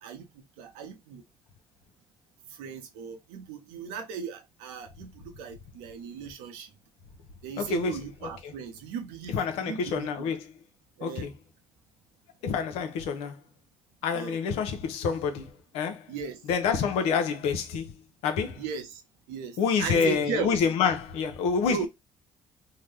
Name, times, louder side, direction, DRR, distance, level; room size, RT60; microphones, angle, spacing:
voice 1, 0.0-1.2 2.5-6.7 7.4-10.3 11.0-11.3 14.1-14.4 16.1-16.4 17.0-17.2 18.5-19.0 19.3-20.5 21.7-21.9, right 7 dB, 85° right, 0.8 m, -37 dB
voice 2, 7.6-7.9 9.3-10.4 11.0-11.3 12.4-13.3 14.0-15.5 15.7-16.0 16.5-17.9 18.2-18.6 19.6-21.9, left 6 dB, 80° left, 0.6 m, -27 dB
2.7 x 2.2 x 3.2 m
supercardioid pair, 60°, 10 cm